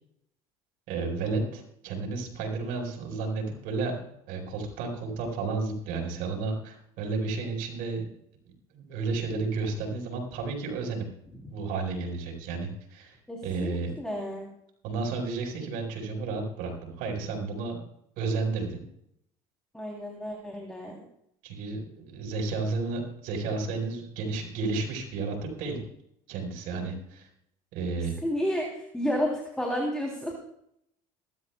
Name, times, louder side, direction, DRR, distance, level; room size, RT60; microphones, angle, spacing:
voice 1, 0.9-8.0 8.7-11.1 11.5-13.2 13.4-13.9 14.8-17.8 18.2-18.8 21.4-25.8 26.3-27.3 27.7-28.2, right 4 dB, 75° right, 3 dB, 5.1 m, -32 dB
voice 2, 13.3-14.5 19.7-21.0 28.2-30.3, equal, 5° left, -1 dB, 3.4 m, -31 dB
22.0 x 13.0 x 2.4 m, 0.74 s
supercardioid pair, 90°, 15 cm